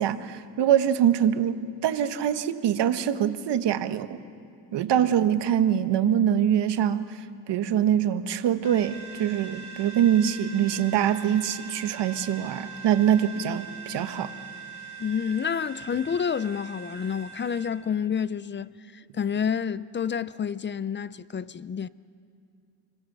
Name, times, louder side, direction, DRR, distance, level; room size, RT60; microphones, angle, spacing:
voice 1, 0.0-4.2 4.7-7.0 7.5-14.3, right 9 dB, 65° right, 1.2 m, -24 dB
sound 1, 8.6-17.7, right 6 dB, 75° left, 5.1 m, -42 dB
voice 2, 15.0-21.9, left 7 dB, 25° left, 0.5 m, -29 dB
25.5 x 22.5 x 6.7 m
cardioid pair, 90°, 45 cm